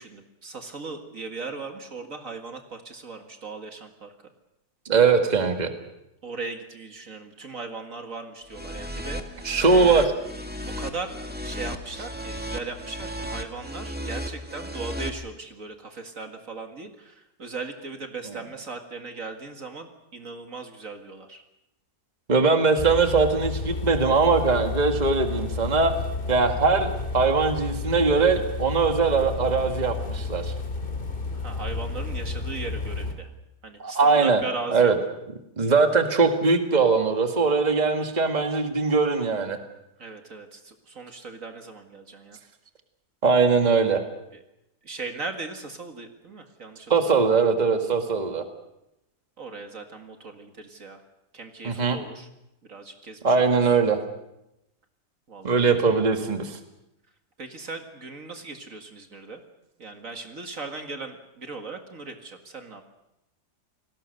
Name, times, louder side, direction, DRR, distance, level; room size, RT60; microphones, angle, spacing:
voice 1, 0.0-4.1 6.2-10.0 10.7-11.2 11.4-21.4 31.3-33.3 33.6-35.0 40.0-42.4 44.3-44.4 44.8-47.1 49.4-51.0 51.3-52.3 52.7-53.4 55.3-55.6 57.4-59.4 59.8-62.8, right 3 dB, 55° right, 5 dB, 2.3 m, -38 dB
voice 2, 4.9-5.7 9.4-10.1 22.3-25.9 26.3-30.5 33.8-34.4 34.7-35.0 35.6-39.6 43.2-44.0 46.9-48.4 51.6-52.0 53.2-54.0 55.4-56.6, right 4 dB, 25° right, 6 dB, 2.0 m, -21 dB
sound 1, 8.5-15.1, equal, 5° right, 1.9 m, -34 dB
sound 2, 22.8-33.1, left 3 dB, 35° left, 2.7 m, -31 dB
29.0 x 20.0 x 6.6 m, 0.88 s
omnidirectional pair, 1.7 m